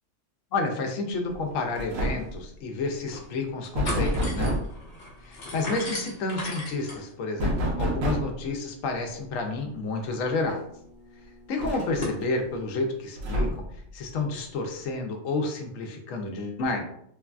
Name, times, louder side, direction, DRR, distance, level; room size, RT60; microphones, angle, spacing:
voice 1, 0.5-4.5 5.2-10.6 11.5-13.6 13.9-16.8, left 3 dB, 80° left, 3 dB, 0.9 m, -30 dB
sound 1, 1.3-1.5 1.8-2.4 3.7-4.8 7.4-8.4 10.0-10.1 10.5-10.6 11.6-12.2 13.2-13.8, equal, 80° right, 1.1 m, -28 dB
sound 2, 2.2-2.3 2.8-3.3 3.6-12.2, left 1 dB, 40° left, 0.8 m, -39 dB
3.1 x 2.3 x 2.3 m, 0.70 s
omnidirectional pair, 1.3 m